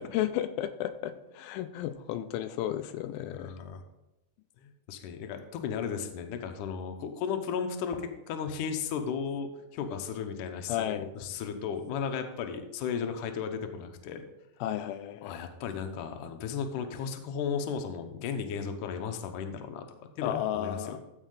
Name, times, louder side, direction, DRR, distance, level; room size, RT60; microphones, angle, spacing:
voice 1, 0.0-3.5 10.7-11.1 14.6-15.4 20.2-21.0, left 11 dB, 90° left, 10 dB, 2.4 m, -33 dB
voice 2, 3.2-3.8 4.6-14.3 15.2-19.8 20.2-21.0, left 6 dB, 70° left, 6 dB, 2.2 m, -35 dB
14.0 x 5.5 x 3.9 m, 0.94 s
omnidirectional pair, 4.1 m